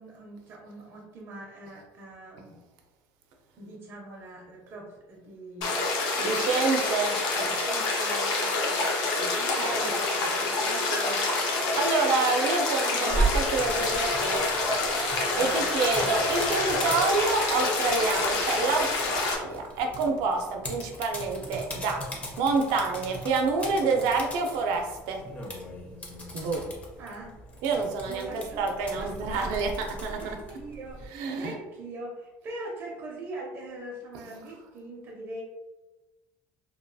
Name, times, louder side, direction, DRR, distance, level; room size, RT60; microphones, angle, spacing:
voice 1, 0.0-2.6 3.6-5.8 7.1-10.6 15.3-15.7 27.0-27.3 28.1-28.6 29.0-29.7 30.1-35.4, right 2 dB, 40° right, -1 dB, 0.5 m, -42 dB
sound 1, 5.6-19.4, left 3 dB, 70° left, 0.6 m, -27 dB
voice 2, 6.2-7.2 9.6-9.9 10.6-14.4 15.4-22.0 22.4-25.2 26.3-26.6 27.6-29.7 30.0-30.6 31.1-31.6, right 4 dB, 90° right, 3 dB, 0.5 m, -28 dB
sound 2, 11.6-19.4 19.8-22.4, left 1 dB, 90° left, 1.4 m, -41 dB
sound 3, 13.1-31.1, right 1 dB, 20° left, 0.5 m, -37 dB
2.8 x 2.3 x 2.6 m, 1.1 s
cardioid pair, 165°, 6 cm